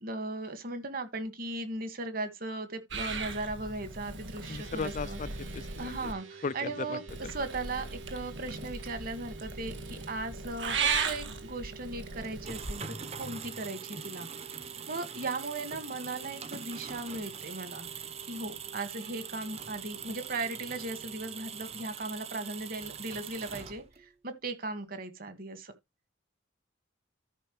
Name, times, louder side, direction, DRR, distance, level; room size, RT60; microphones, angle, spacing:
voice 1, 0.0-5.2 5.8-7.0 7.3-10.8 11.0-12.8 13.2-14.3 14.9-17.9 18.2-25.7, right 2 dB, 45° right, 1.6 m, -37 dB
Purr / Meow, 2.9-6.1 7.1-12.7, right 5 dB, 65° right, 1.9 m, -37 dB
sound 1, 4.4-21.7, right 5 dB, 80° right, 3.5 m, -51 dB
voice 2, 4.5-6.1 6.4-7.3, left 4 dB, 40° left, 0.4 m, -37 dB
sound 2, 12.2-24.1, right 7 dB, 30° right, 0.8 m, -42 dB
13.5 x 5.7 x 3.0 m
head